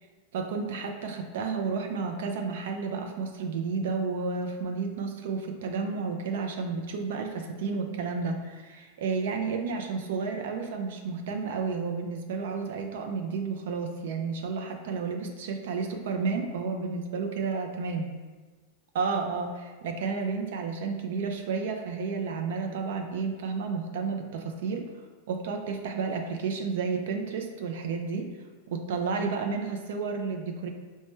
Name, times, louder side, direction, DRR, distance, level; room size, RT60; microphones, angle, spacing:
voice 1, 0.3-18.1 18.9-24.9 25.3-28.3 28.7-30.7, right 4 dB, 75° right, 3 dB, 0.4 m, -31 dB
4.4 x 2.1 x 3.0 m, 1.4 s
supercardioid pair, 150°, 0 cm